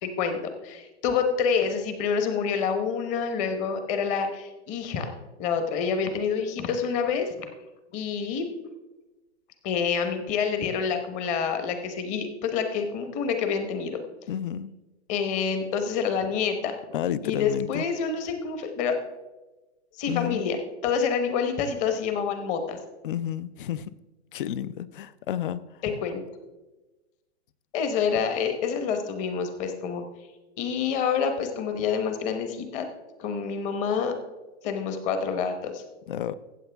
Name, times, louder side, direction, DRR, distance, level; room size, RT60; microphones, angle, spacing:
voice 1, 0.0-5.1 5.4-7.5 7.9-8.5 9.6-14.0 15.1-16.7 17.2-18.9 20.0-20.6 20.8-22.8 25.8-26.2 27.7-30.0 30.6-32.9 33.2-34.2 34.6-35.8, left 6 dB, 20° left, 7 dB, 0.9 m, -27 dB
voice 2, 14.3-14.7 16.9-17.9 20.1-20.5 23.0-23.9 24.3-25.8 36.1-36.3, left 10 dB, 45° left, 18 dB, 0.5 m, -31 dB
15.5 x 8.1 x 3.4 m, 1.1 s
hypercardioid pair, 160°, 36 cm